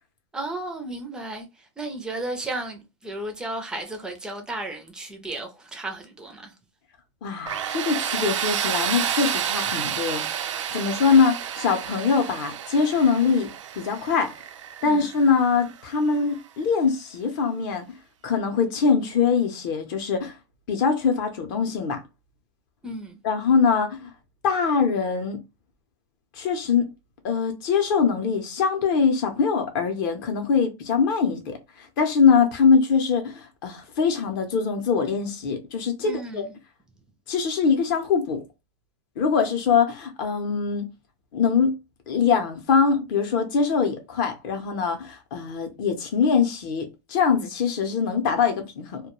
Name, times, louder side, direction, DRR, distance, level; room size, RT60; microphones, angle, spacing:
voice 1, 0.3-6.6 14.8-15.0 22.8-23.2 36.0-36.5, right 2 dB, 5° right, 0.4 m, -34 dB
voice 2, 7.2-13.5 13.8-14.3 14.8-17.8 18.2-20.4 20.7-22.0 23.2-24.1 24.4-25.4 26.4-26.9 27.2-36.4 37.3-38.4 39.2-40.8 41.3-41.7 42.1-49.0, left 5 dB, 45° left, 0.6 m, -23 dB
Tools, 7.5-16.2, right 9 dB, 85° right, 0.4 m, -30 dB
2.2 x 2.1 x 2.9 m
supercardioid pair, 150°, 15 cm